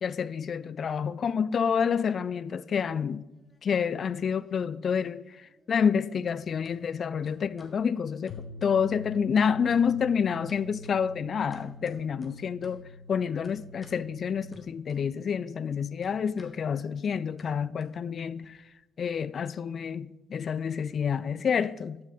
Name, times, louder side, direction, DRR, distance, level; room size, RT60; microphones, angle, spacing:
voice 1, 0.0-3.2 3.6-8.4 8.6-12.8 13.1-18.6 19.0-22.0, left 7 dB, 50° left, 0.3 m, -28 dB
sound 1, 3.3-4.1 4.4-6.0 6.3-6.8 7.3-7.8 8.3-9.1 9.4-10.0 10.5-12.9 13.4-14.0 14.5-15.4 15.6-18.5, left 1 dB, 15° left, 1.7 m, -57 dB
sound 2, 8.3-14.6, left 3 dB, 85° left, 0.6 m, -45 dB
12.5 x 6.1 x 4.2 m
cardioid pair, 90°, 0 cm